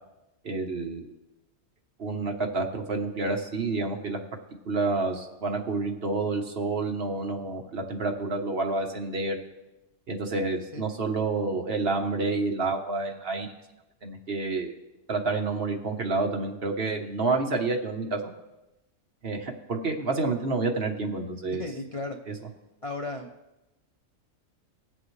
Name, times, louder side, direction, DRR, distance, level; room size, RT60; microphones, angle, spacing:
voice 1, 0.4-1.0 2.0-4.2 4.6-9.4 10.1-13.5 14.0-14.7 15.1-18.3 19.2-21.6, right 3 dB, 50° right, 3 dB, 1.3 m, -29 dB
voice 2, 21.6-22.2 22.8-23.3, left 2 dB, 40° left, 3 dB, 0.5 m, -34 dB
20.5 x 7.9 x 3.2 m, 0.99 s
omnidirectional pair, 1.4 m